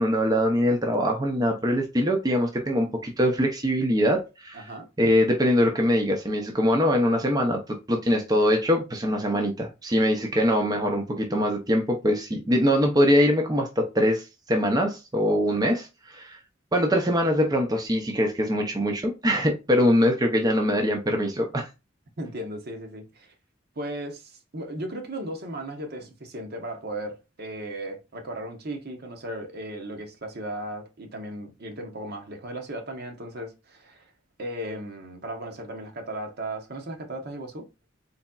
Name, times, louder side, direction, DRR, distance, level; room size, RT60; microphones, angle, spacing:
voice 1, 0.0-4.7 5.0-16.4 16.7-21.7, equal, 20° right, 0.6 m, -23 dB
voice 2, 4.5-4.9 22.2-23.3 23.8-34.0 34.4-37.7, right 1 dB, 55° right, 1.0 m, -36 dB
4.0 x 3.4 x 2.3 m
head